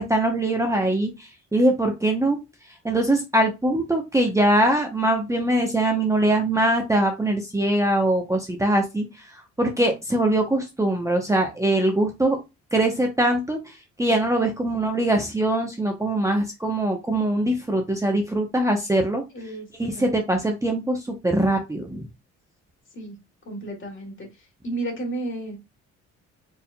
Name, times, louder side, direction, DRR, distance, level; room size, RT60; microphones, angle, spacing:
voice 1, 0.0-2.4 2.7-12.4 12.7-19.2 19.8-22.0, right 1 dB, 10° right, 2 dB, 0.8 m, -22 dB
voice 2, 19.3-19.7 19.9-20.1 22.9-23.2 23.5-24.3 24.6-25.6, right 2 dB, 40° left, 1 dB, 2.2 m, -32 dB
4.5 x 3.5 x 2.2 m, 0.24 s
cardioid pair, 90°, 30 cm